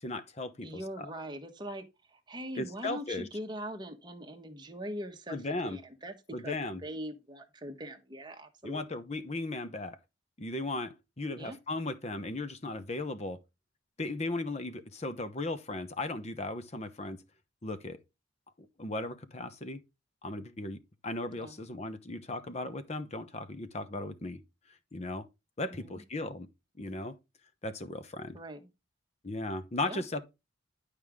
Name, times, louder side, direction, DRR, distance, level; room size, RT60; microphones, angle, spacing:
voice 1, 0.0-0.7 1.0-1.1 2.5-3.3 5.3-5.8 6.3-6.8 8.6-10.0 10.4-13.4 14.0-17.2 17.6-18.0 18.6-19.8 20.2-24.4 24.9-25.3 25.6-26.5 26.8-27.2 27.6-28.4 29.2-30.3, left 2 dB, 35° left, 0.9 m, -36 dB
voice 2, 0.6-8.8 11.4-11.6 21.3-21.6 25.7-26.0 28.3-28.7 29.8-30.0, equal, 20° right, 1.3 m, -42 dB
11.0 x 5.0 x 3.6 m
head